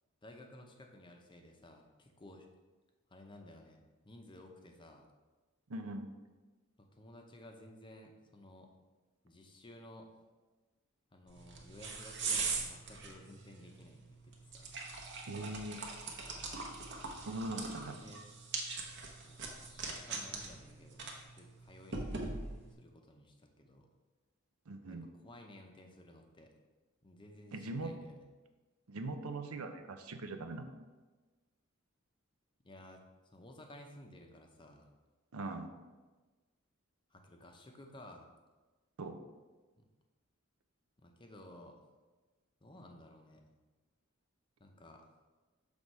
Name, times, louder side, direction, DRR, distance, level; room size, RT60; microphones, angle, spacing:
voice 1, 0.2-2.5 3.1-5.1 6.9-8.7 9.2-10.1 11.1-14.8 17.5-18.2 19.0-22.2 22.7-23.9 24.7-25.0 25.2-26.5 27.0-28.3 32.6-34.9 37.1-38.3 39.8-39.9 41.0-41.9 42.6-43.4 44.6-45.2, left 1 dB, 25° left, 3 dB, 0.7 m, -55 dB
voice 2, 5.7-6.1 15.3-15.8 17.2-18.0 24.7-25.1 27.5-28.0 28.9-30.7 35.3-35.7 39.0-39.2, right 2 dB, 90° right, 7 dB, 0.6 m, -41 dB
sound 1, 11.3-22.7, right 4 dB, 55° right, 1.0 m, -42 dB
6.2 x 3.5 x 5.4 m, 1.3 s
head